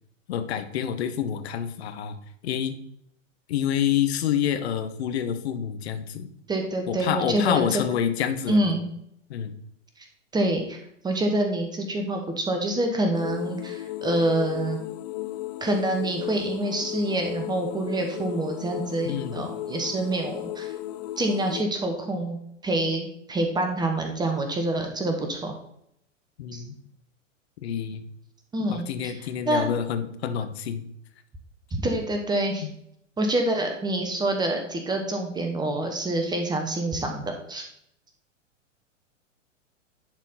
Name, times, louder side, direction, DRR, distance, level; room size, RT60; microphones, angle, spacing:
voice 1, 0.3-2.1 2.4-2.7 3.5-6.3 6.9-8.8 9.3-9.5 19.0-19.5 26.4-26.7 27.6-28.0 28.7-30.8 32.6-32.7, left 9 dB, 55° left, 8 dB, 1.0 m, -27 dB
voice 2, 6.5-7.6 8.5-8.8 10.3-14.8 15.6-20.7 21.2-22.4 22.6-25.5 26.5-26.6 28.5-29.1 29.5-29.7 31.7-32.6 33.2-37.7, right 1 dB, 10° right, 4 dB, 0.9 m, -26 dB
sound 1, 13.1-21.6, left 15 dB, 35° left, 0.4 m, -35 dB
10.5 x 4.2 x 4.0 m, 0.72 s
figure-of-eight pair, 100°, 38 cm